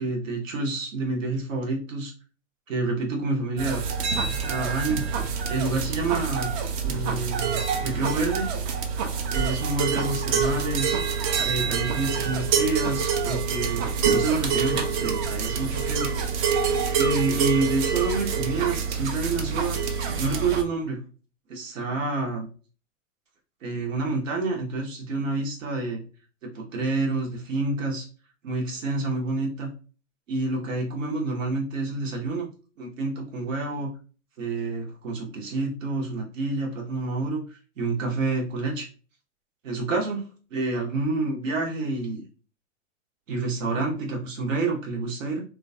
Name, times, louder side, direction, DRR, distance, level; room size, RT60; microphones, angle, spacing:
voice 1, 0.0-2.1 2.7-3.8 4.5-5.0 5.5-8.5 9.0-11.0 11.4-13.8 14.1-16.1 17.0-19.8 20.2-21.0 21.5-22.5 23.6-26.0 26.4-28.1 28.4-29.7 30.3-32.5 32.8-33.9 34.4-38.9 39.6-40.2 40.5-42.2 43.3-45.4, right 3 dB, 85° right, -1 dB, 0.9 m, -28 dB
sound 1, 3.6-20.6, right 6 dB, 40° right, 0.5 m, -26 dB
3.1 x 2.2 x 2.6 m, 0.37 s
hypercardioid pair, 115°, 38 cm